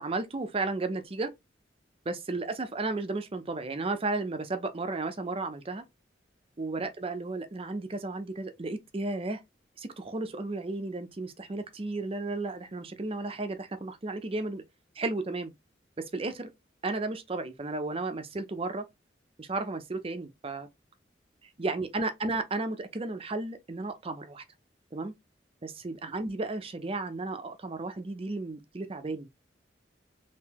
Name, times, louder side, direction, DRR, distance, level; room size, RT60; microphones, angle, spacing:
voice 1, 0.0-1.3 2.1-5.8 6.6-9.4 9.8-14.6 15.0-15.5 16.1-16.5 16.8-18.9 19.4-20.7 21.6-24.4 24.9-25.1 25.6-29.3, right 3 dB, 30° right, 0.6 m, -33 dB
3.7 x 2.8 x 2.9 m
head